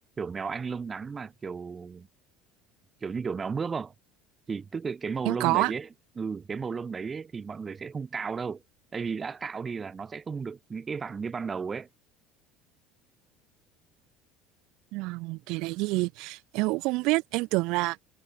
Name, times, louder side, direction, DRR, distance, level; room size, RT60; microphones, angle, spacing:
voice 1, 0.2-2.1 3.0-3.9 4.5-5.9 6.2-8.6 8.9-11.9, right 5 dB, 25° right, 2.9 m, -34 dB
voice 2, 5.2-5.7 14.9-18.0, right 23 dB, 70° right, 1.0 m, -27 dB
supercardioid pair, 105°, 0 cm